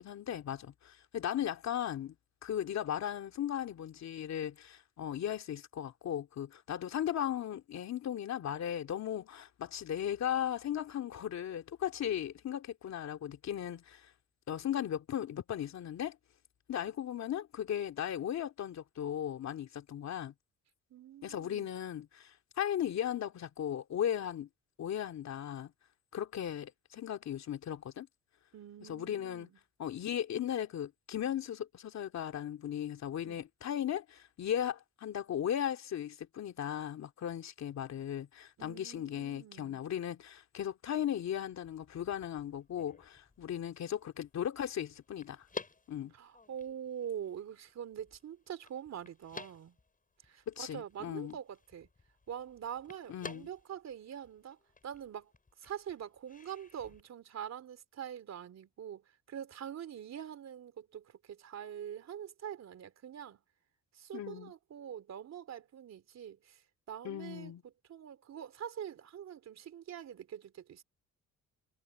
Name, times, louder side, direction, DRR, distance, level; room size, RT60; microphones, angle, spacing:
voice 1, 0.0-2.1 2.4-14.1 14.5-16.2 16.7-20.3 21.2-24.5 24.8-25.7 26.1-28.1 28.8-29.5 29.8-45.5 45.9-46.1 50.5-51.4 53.1-53.5 64.1-64.5 67.0-67.6, left 10 dB, 65° left, 2.6 m, -37 dB
voice 2, 20.9-21.7 28.5-29.6 33.2-33.4 38.6-39.8 46.1-49.8 50.2-51.9 52.3-55.3 55.6-63.4 63.9-66.6 66.9-70.8, right 9 dB, 60° right, 3.3 m, -44 dB
sound 1, 41.5-57.0, left 4 dB, 30° left, 7.6 m, -53 dB
cardioid pair, 90°, 30 cm